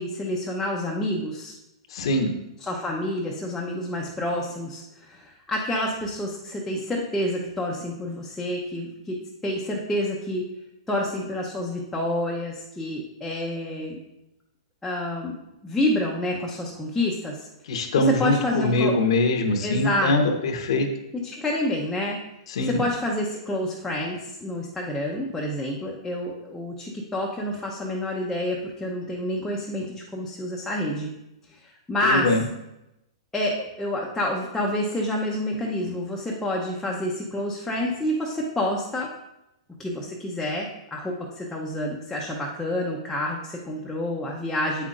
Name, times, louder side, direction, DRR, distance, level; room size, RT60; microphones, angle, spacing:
voice 1, 0.0-1.5 2.6-10.5 10.9-14.0 14.8-15.3 15.6-17.5 18.0-18.9 19.6-20.4 21.1-22.2 22.6-31.1 31.6-32.3 33.3-39.1 39.8-44.9, left 1 dB, 5° left, -3 dB, 0.8 m, -28 dB
voice 2, 1.9-2.3 17.7-20.9 22.5-22.8 32.0-32.4, left 2 dB, 70° left, 4 dB, 1.0 m, -23 dB
8.0 x 5.7 x 2.5 m, 0.90 s
hypercardioid pair, 130°, 3 cm